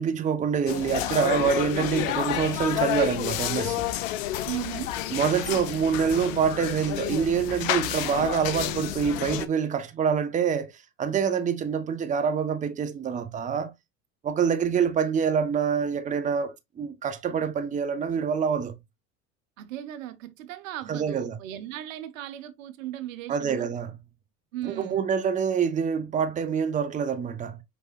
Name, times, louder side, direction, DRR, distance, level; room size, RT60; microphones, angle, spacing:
voice 1, 0.0-3.9 5.1-10.7 11.0-13.7 14.2-18.8 20.9-21.4 23.3-23.9 24.6-27.6, right 7 dB, 20° right, 0.6 m, -26 dB
sound 1, 0.7-9.4, left 12 dB, 70° left, 0.6 m, -30 dB
voice 2, 4.5-4.9 19.6-23.7 24.5-25.0, right 12 dB, 75° right, 0.7 m, -37 dB
5.1 x 3.3 x 2.2 m
hypercardioid pair, 80°, 40 cm